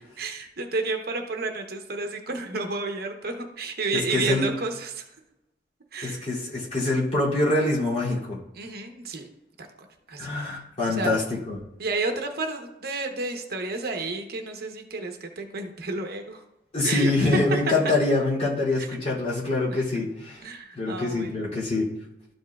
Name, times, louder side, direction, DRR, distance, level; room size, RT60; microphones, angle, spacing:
voice 1, 0.2-5.1 5.9-6.3 8.5-9.3 9.6-9.7 10.1-10.3 10.9-11.2 11.8-16.4 16.8-17.4 18.8-18.9 19.7-19.8 20.4-21.3, right 3 dB, 60° right, 4 dB, 0.9 m, -31 dB
voice 2, 3.9-4.5 6.0-8.4 10.2-11.6 16.7-20.4 20.8-21.9, left 2 dB, 40° left, -6 dB, 2.8 m, -25 dB
12.5 x 5.4 x 2.4 m, 0.90 s
head